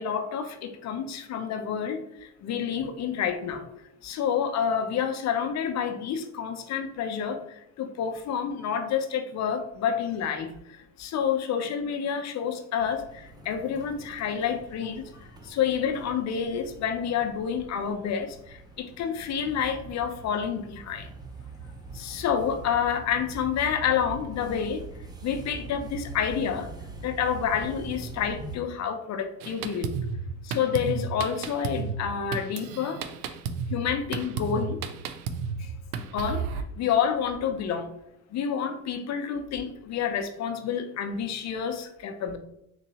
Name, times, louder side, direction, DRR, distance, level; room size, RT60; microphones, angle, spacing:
voice 1, 0.0-3.7 4.0-21.1 21.9-24.8 25.2-26.7 27.0-30.0 30.4-33.0 33.7-34.8 35.6-35.7 36.1-37.9 38.3-42.4, left 7 dB, 40° left, 7 dB, 0.5 m, -29 dB
sound 1, 12.8-28.6, right 3 dB, 10° right, 0.3 m, -43 dB
Drum kit, 29.4-36.6, right 5 dB, 75° right, 0.5 m, -33 dB
3.8 x 2.9 x 2.8 m, 0.79 s
supercardioid pair, 85°, 44 cm